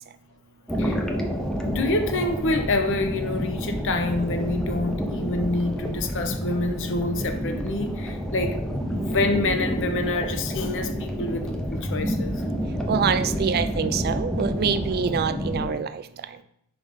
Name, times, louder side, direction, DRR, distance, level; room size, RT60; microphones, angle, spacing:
sound 1, 0.7-15.7, equal, 5° left, 0.6 m, -29 dB
voice 1, 1.6-8.6 8.9-12.3, left 2 dB, 55° left, 6 dB, 0.8 m, -27 dB
voice 2, 12.9-16.0, right 6 dB, 45° right, 11 dB, 0.4 m, -25 dB
4.9 x 3.6 x 5.3 m, 0.72 s
head